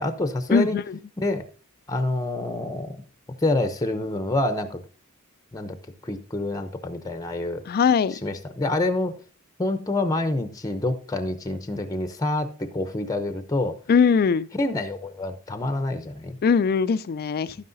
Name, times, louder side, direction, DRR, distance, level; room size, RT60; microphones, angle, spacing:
voice 1, 0.0-0.8 1.2-1.4 1.9-2.9 3.4-4.8 5.5-5.8 6.0-7.6 8.2-9.2 9.6-13.8 14.6-16.4, left 2 dB, 15° left, 0.7 m, -27 dB
voice 2, 0.5-1.0 7.7-8.2 13.9-14.5 16.4-17.6, left 6 dB, 45° left, 0.4 m, -20 dB
11.5 x 9.4 x 2.6 m
head